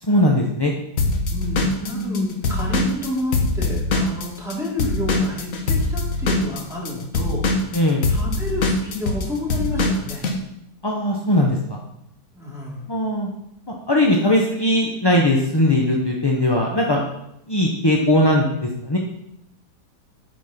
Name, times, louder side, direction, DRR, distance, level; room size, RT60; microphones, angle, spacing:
voice 1, 0.0-0.7 1.8-2.3 7.7-8.1 10.8-11.8 12.9-13.3 13.9-17.0 17.5-19.0, left 1 dB, 25° left, -1 dB, 0.6 m, -19 dB
Drum kit / Drum, 1.0-4.5 4.8-10.3, left 3 dB, 55° left, 1.4 m, -22 dB
voice 2, 1.3-10.3 12.3-12.8, left 1 dB, ahead, -5 dB, 2.9 m, -30 dB
9.9 x 5.3 x 5.8 m, 0.78 s
omnidirectional pair, 1.9 m